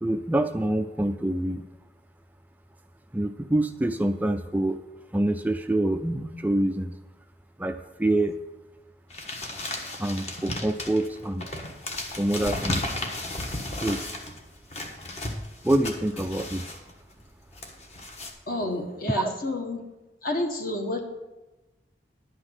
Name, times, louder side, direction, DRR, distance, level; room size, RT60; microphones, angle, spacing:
voice 1, 0.0-1.7 3.1-4.8 5.1-7.0 7.6-8.4 10.0-11.5 12.2-12.8 13.8-14.0 15.6-16.7 19.1-19.3, right 1 dB, 10° right, 7 dB, 0.3 m, -26 dB
sound 1, 9.1-18.3, left 1 dB, 40° left, 1.3 m, -35 dB
voice 2, 18.5-19.8 20.2-21.0, left 1 dB, 55° left, 3 dB, 1.6 m, -29 dB
11.0 x 5.7 x 8.0 m, 1.1 s
head